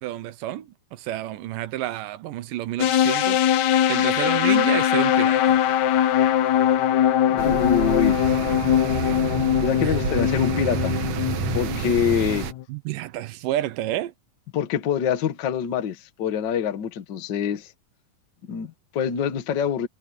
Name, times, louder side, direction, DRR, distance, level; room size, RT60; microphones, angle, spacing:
voice 1, 0.0-5.6 9.8-10.0 12.7-14.1, right 14 dB, 90° right, 2.6 m, -30 dB
sound 1, 2.8-12.6, left 10 dB, 65° left, 2.3 m, -21 dB
voice 2, 7.3-8.2 9.6-11.0 11.3-12.5 14.5-17.7 18.4-19.9, left 8 dB, 50° left, 1.5 m, -25 dB
sound 2, 7.4-12.5, right 9 dB, 65° right, 2.3 m, -29 dB
omnidirectional pair, 3.7 m